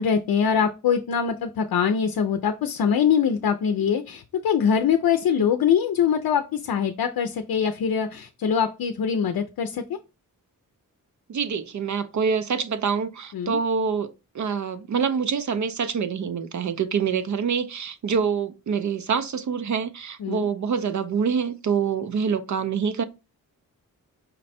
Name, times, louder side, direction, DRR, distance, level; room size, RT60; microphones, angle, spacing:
voice 1, 0.0-10.0 13.3-13.6 20.2-20.5, left 7 dB, 75° left, 0.5 m, -23 dB
voice 2, 11.3-23.0, right 6 dB, 55° right, 0.5 m, -26 dB
5.2 x 2.1 x 4.1 m
cardioid pair, 75°, 36 cm